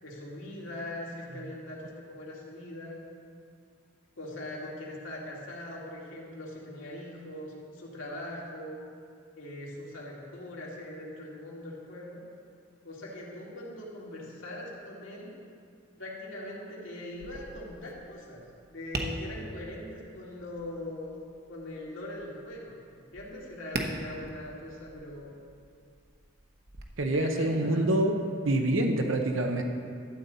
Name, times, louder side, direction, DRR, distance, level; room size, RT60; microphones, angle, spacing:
voice 1, 0.0-3.0 4.2-8.8 9.4-12.2 12.8-15.4 16.0-18.4 18.7-21.2 21.5-25.3 27.1-28.0, left 1 dB, 80° left, -5 dB, 2.3 m, -41 dB
Tap, 17.1-26.8, right 2 dB, 55° right, 1.0 m, -42 dB
voice 2, 27.0-28.1 28.4-29.6, right 1 dB, 85° right, 4 dB, 0.8 m, -26 dB
13.0 x 8.2 x 4.1 m, 2.2 s
head